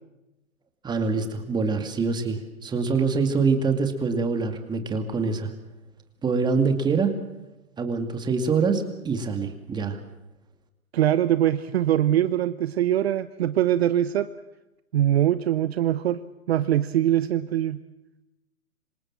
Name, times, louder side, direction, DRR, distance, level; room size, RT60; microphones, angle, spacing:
voice 1, 0.8-5.5 6.2-7.2 7.8-10.0, right 4 dB, 10° right, 7 dB, 2.3 m, -25 dB
voice 2, 10.9-14.3 14.9-16.2 16.5-17.8, right 12 dB, 45° right, 13 dB, 1.0 m, -22 dB
26.5 x 26.5 x 7.5 m, 0.99 s
hypercardioid pair, 135°, 43 cm